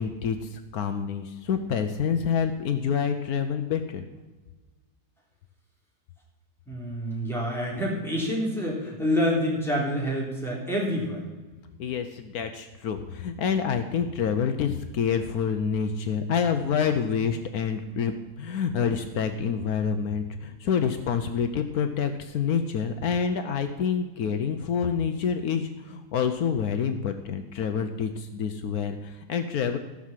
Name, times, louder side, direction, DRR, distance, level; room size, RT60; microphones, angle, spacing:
voice 1, 0.0-4.0 11.8-29.8, left 7 dB, 75° left, 8 dB, 1.2 m, -27 dB
voice 2, 6.7-11.2, equal, ahead, -4 dB, 3.5 m, -27 dB
15.5 x 6.3 x 7.4 m, 1.3 s
omnidirectional pair, 1.6 m